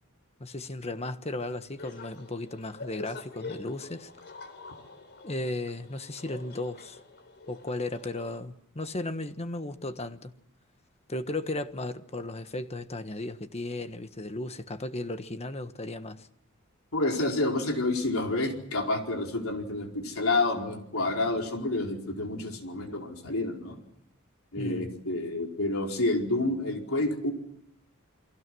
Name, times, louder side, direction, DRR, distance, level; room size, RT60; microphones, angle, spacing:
voice 1, 0.4-4.1 5.2-7.0 7.5-10.3 11.1-16.3 24.6-24.9, left 2 dB, 30° left, 1.4 m, -35 dB
sound 1, 1.8-8.4, left 3 dB, 50° left, 3.8 m, -45 dB
voice 2, 16.9-23.8 24.5-27.3, left 2 dB, 70° left, 4.7 m, -29 dB
29.5 x 23.0 x 6.3 m
head